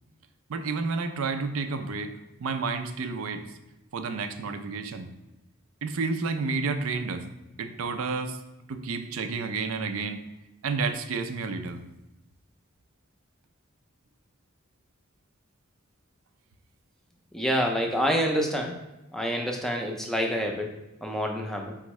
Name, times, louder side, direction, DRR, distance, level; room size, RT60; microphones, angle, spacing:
voice 1, 0.5-2.1 2.4-3.4 3.9-5.1 5.8-7.3 7.6-8.4 8.7-10.2 10.6-11.8, right 4 dB, 80° right, 7 dB, 0.4 m, -30 dB
voice 2, 17.3-18.8 19.1-21.7, equal, ahead, 1 dB, 0.4 m, -27 dB
4.4 x 3.6 x 3.1 m, 0.98 s
head